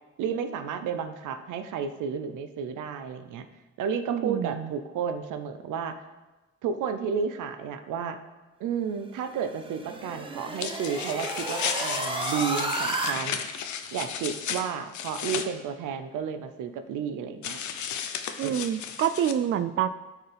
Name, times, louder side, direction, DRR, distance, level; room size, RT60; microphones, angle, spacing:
voice 1, 0.2-3.5 3.8-6.0 6.6-8.2 8.6-13.4 13.9-17.6 18.4-18.6, right 7 dB, 85° right, 9 dB, 0.7 m, -32 dB
voice 2, 4.1-4.7 18.4-19.9, right 9 dB, 45° right, 11 dB, 0.4 m, -27 dB
sound 1, 9.2-13.1, right 2 dB, 15° right, 0.9 m, -32 dB
sound 2, 10.5-15.5 17.4-19.3, left 8 dB, 70° left, 0.8 m, -34 dB
13.0 x 4.6 x 3.4 m, 1.2 s
cardioid pair, 90°, 30 cm